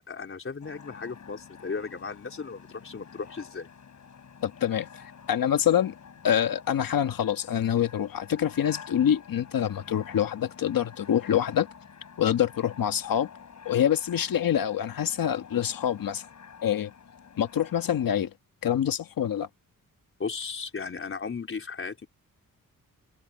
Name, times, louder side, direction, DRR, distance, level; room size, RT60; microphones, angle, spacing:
voice 1, 0.0-3.7 20.2-22.1, left 5 dB, 40° left, 4.3 m, -36 dB
sound 1, 0.6-18.2, left 7 dB, 55° left, 4.7 m, -49 dB
voice 2, 4.4-5.9 6.2-11.7 12.2-13.3 13.6-16.3 16.6-16.9 17.4-18.3 18.6-19.5, left 9 dB, 80° left, 1.5 m, -26 dB
wide cardioid pair, 155°, 34 cm